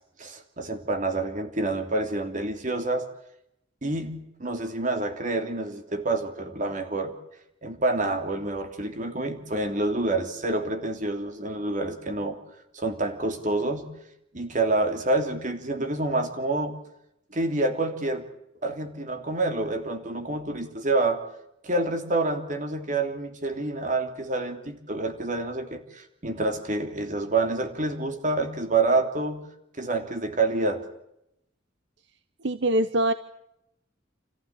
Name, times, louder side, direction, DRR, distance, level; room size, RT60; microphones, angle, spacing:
voice 1, 0.2-3.1 3.8-7.1 7.6-12.4 12.7-14.0 14.3-16.8 17.3-18.3 18.6-21.2 21.6-29.5 29.8-30.8, right 2 dB, 40° right, 6 dB, 3.2 m, -27 dB
voice 2, 32.4-33.1, right 1 dB, 65° right, 12 dB, 0.9 m, -23 dB
29.5 x 14.5 x 10.0 m, 0.83 s
head